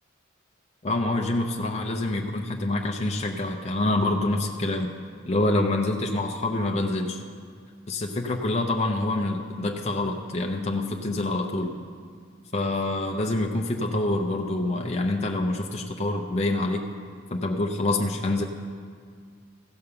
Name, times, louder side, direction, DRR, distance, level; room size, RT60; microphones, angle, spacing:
voice 1, 0.8-4.9 5.3-7.2 7.9-11.7 12.5-16.9 17.3-18.4, left 2 dB, 30° left, 2 dB, 0.6 m, -26 dB
15.0 x 5.3 x 6.8 m, 2.1 s
head